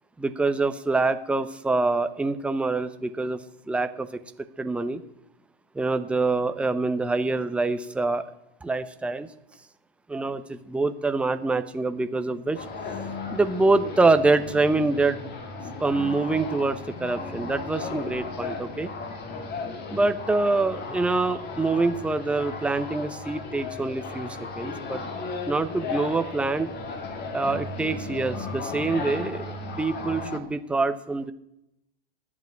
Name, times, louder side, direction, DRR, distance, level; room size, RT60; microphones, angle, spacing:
voice 1, 0.2-3.4 3.7-4.2 4.6-5.0 5.7-8.2 8.6-9.3 10.1-12.6 13.3-15.2 15.8-18.9 19.9-25.0 25.5-26.7 27.3-31.3, right 3 dB, 5° right, 9 dB, 0.7 m, -25 dB
sound 1, 12.5-30.4, left 3 dB, 30° left, 2.1 m, -35 dB
12.0 x 7.2 x 9.4 m, 0.83 s
hypercardioid pair, 105°, 31 cm